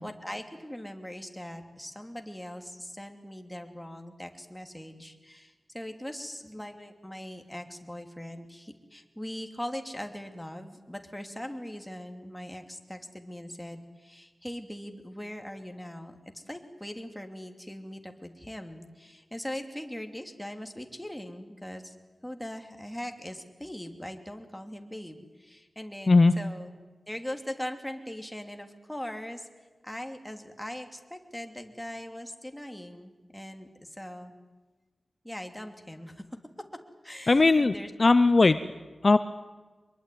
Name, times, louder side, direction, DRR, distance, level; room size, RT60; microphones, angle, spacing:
voice 1, 0.0-22.0 22.2-26.7 27.1-29.5 29.8-34.3 35.2-36.2 37.0-37.9, left 1 dB, 5° left, 5 dB, 3.0 m, -40 dB
voice 2, 37.3-37.7 38.0-38.6 39.0-39.2, left 3 dB, 45° left, 12 dB, 0.8 m, -18 dB
24.5 x 22.0 x 9.4 m, 1.3 s
wide cardioid pair, 85°, 0 cm